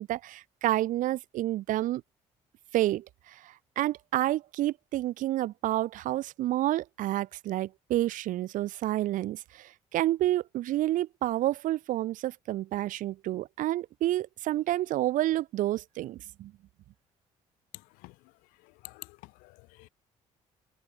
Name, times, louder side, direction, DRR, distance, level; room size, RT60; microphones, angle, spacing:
voice 1, 0.0-2.0 2.7-16.5, right 15 dB, 70° right, 1.1 m, -29 dB
voice 2, 18.6-19.9, left 24 dB, 85° left, 1.2 m, -49 dB
supercardioid pair, 70°, 14 cm